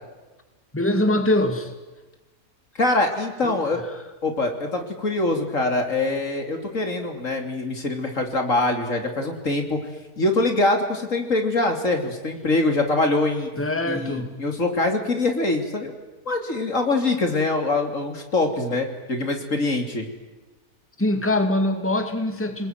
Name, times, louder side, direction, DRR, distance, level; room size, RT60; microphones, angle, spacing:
voice 1, 0.7-1.7 3.4-3.6 13.6-14.3 21.0-22.7, left 1 dB, 10° left, 6 dB, 2.5 m, -23 dB
voice 2, 2.8-3.8 4.2-9.8 10.2-13.5 13.9-16.0 16.3-20.1, left 2 dB, 60° left, 4 dB, 3.5 m, -24 dB
30.0 x 20.5 x 9.3 m, 1.2 s
omnidirectional pair, 1.5 m